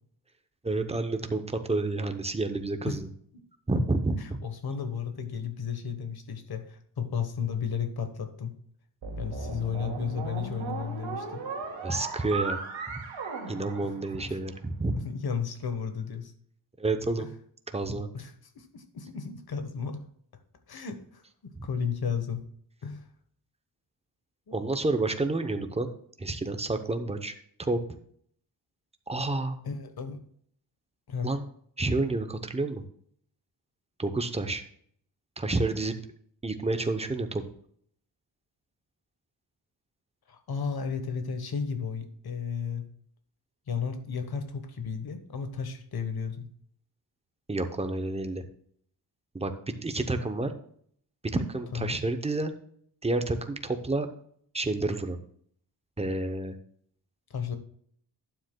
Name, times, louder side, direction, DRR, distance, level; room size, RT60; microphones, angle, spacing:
voice 1, 0.6-3.1 3.7-4.4 11.8-12.6 12.9-13.0 13.5-15.0 16.8-17.3 17.7-18.1 21.5-21.7 24.5-25.9 26.2-27.3 27.6-28.0 29.1-29.6 31.2-31.4 31.8-32.8 34.0-34.6 35.4-35.9 36.4-37.4 47.5-48.4 49.3-49.5 49.8-50.5 51.3-52.5 53.0-54.1 54.5-55.2 56.0-56.5, right 2 dB, 15° right, 7 dB, 0.7 m, -29 dB
voice 2, 4.2-8.5 9.2-11.5 13.8-13.9 14.3-14.4 14.9-16.3 17.2-17.3 18.1-20.0 20.7-22.4 22.8-23.0 24.5-24.7 29.6-30.2 31.1-31.3 40.3-42.8 43.7-46.5 51.7-52.0 57.3-57.6, left 6 dB, 55° left, 8 dB, 1.2 m, -34 dB
sound 1, 9.0-14.5, right 4 dB, 90° right, 2.2 m, -36 dB
12.0 x 9.3 x 2.2 m, 0.63 s
wide cardioid pair, 180°, 45 cm